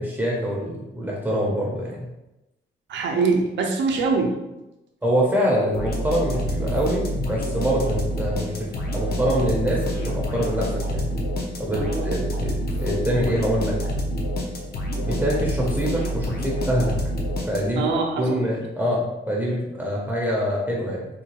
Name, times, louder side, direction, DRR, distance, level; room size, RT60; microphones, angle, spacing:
voice 1, 0.0-2.1 5.0-8.5 8.9-11.1 11.6-12.5 12.8-13.8 15.0-16.9 17.5-17.8 18.2-21.1, equal, 10° right, -4 dB, 0.5 m, -25 dB
voice 2, 2.9-4.4 11.7-12.1 17.7-18.4, right 4 dB, 70° right, 2 dB, 0.4 m, -23 dB
sound 1, 5.7-17.9, equal, 55° left, 0.6 m, -27 dB
3.7 x 2.3 x 2.9 m, 0.95 s
wide cardioid pair, 155°, 19 cm